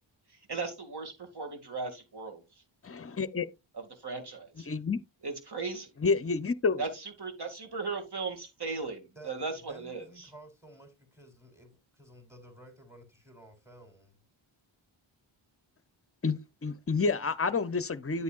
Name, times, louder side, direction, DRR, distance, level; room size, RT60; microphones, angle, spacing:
voice 1, 0.3-2.6 3.7-4.7 5.2-5.9 6.8-10.3, right 4 dB, 50° right, 2.3 m, -37 dB
voice 2, 2.8-3.5 4.7-5.0 6.0-6.8 16.2-18.2, left 4 dB, 30° left, 0.7 m, -29 dB
voice 3, 9.2-14.2, right 1 dB, 5° right, 3.8 m, -53 dB
9.3 x 8.2 x 2.4 m
wide cardioid pair, 70°, 49 cm